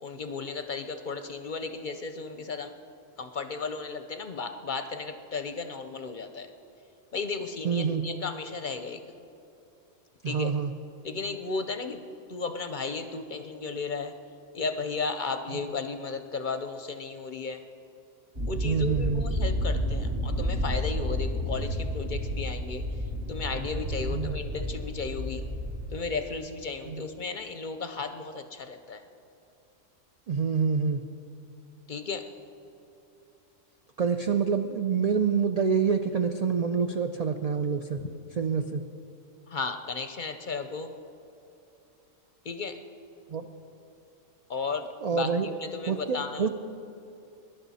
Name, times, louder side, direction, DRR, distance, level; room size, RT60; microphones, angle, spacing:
voice 1, 0.0-2.7 3.2-6.5 7.1-9.0 10.3-10.5 11.0-12.0 12.3-14.1 14.5-17.6 18.5-22.8 23.3-25.4 25.9-29.0 31.9-32.2 38.0-38.1 39.5-40.9 42.5-42.8 44.5-46.5, left 4 dB, 50° left, 8 dB, 0.6 m, -34 dB
voice 2, 7.6-8.0 10.2-10.7 15.5-15.6 18.6-19.3 24.1-24.4 26.8-27.0 30.3-31.0 34.0-38.0 38.4-38.8 43.3-43.4 45.0-45.5 45.9-46.5, right 6 dB, 75° right, 7 dB, 0.3 m, -27 dB
sound 1, 18.3-26.0, equal, 55° right, 2.3 m, -31 dB
19.5 x 11.0 x 4.1 m, 2.7 s
omnidirectional pair, 1.3 m